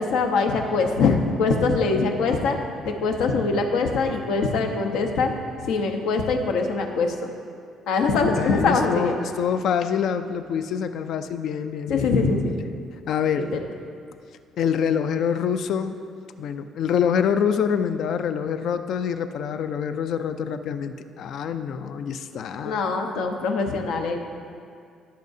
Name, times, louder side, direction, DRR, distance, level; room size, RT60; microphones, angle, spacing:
voice 1, 0.0-2.6 2.8-5.3 5.6-7.3 7.9-9.1 11.9-12.5 13.3-13.6 22.6-24.2, left 4 dB, 75° left, 3 dB, 0.9 m, -23 dB
voice 2, 8.4-12.1 13.1-13.6 14.6-15.9 16.4-22.8, left 7 dB, 55° left, 10 dB, 0.4 m, -26 dB
16.0 x 6.6 x 2.7 m, 2.3 s
cardioid pair, 155°, 0 cm